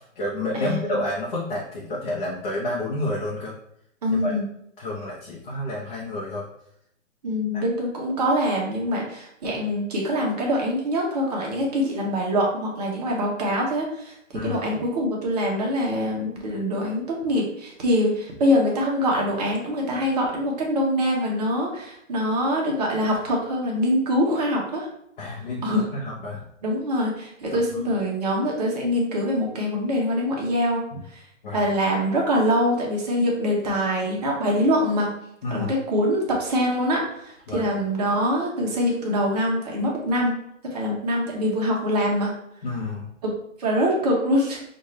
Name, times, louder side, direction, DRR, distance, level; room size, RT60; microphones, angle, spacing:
voice 1, 0.0-3.5 4.1-4.3 4.8-6.5 7.5-7.6 14.3-14.8 25.2-26.4 27.5-27.6 30.9-31.0 31.4-31.7 35.4-35.7 37.5-37.7 42.6-43.1, left 1 dB, 35° left, -4 dB, 0.8 m, -30 dB
voice 2, 0.5-1.0 4.0-4.4 7.2-14.2 14.4-24.9 25.6-25.8 26.6-30.8 31.1-31.2 31.5-35.1 35.5-40.4 40.7-42.3 43.2-43.3 43.6-44.6, equal, 30° right, -2 dB, 0.9 m, -24 dB
5.6 x 2.5 x 3.1 m, 0.76 s
hypercardioid pair, 160°, 39 cm